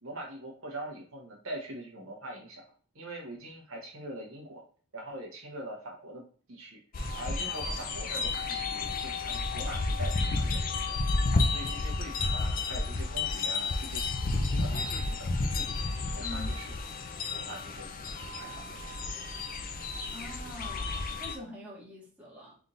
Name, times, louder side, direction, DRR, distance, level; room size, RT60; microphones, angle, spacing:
voice 1, 0.0-2.6 2.9-4.6 4.9-6.2 6.5-6.8 7.1-11.0 11.5-14.0 14.5-15.8 16.2-16.8 17.3-18.9, right 1 dB, 65° right, 0 dB, 1.0 m, -43 dB
sound 1, 6.9-21.3, left 3 dB, 40° left, 0.5 m, -31 dB
voice 2, 16.2-16.5 18.2-18.3 20.1-22.6, left 1 dB, 5° right, -5 dB, 1.5 m, -44 dB
4.0 x 3.5 x 2.5 m, 0.41 s
head